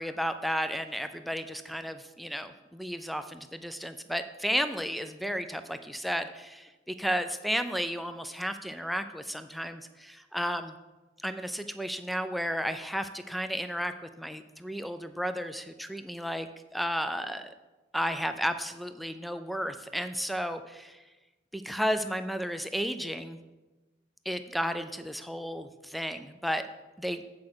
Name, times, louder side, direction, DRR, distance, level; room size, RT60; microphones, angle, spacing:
voice 1, 0.0-10.7 11.2-16.5 16.7-17.5 17.9-21.0 21.5-23.4 24.3-26.6 27.0-27.2, equal, ahead, 9 dB, 0.3 m, -33 dB
8.5 x 4.8 x 6.1 m, 1.2 s
head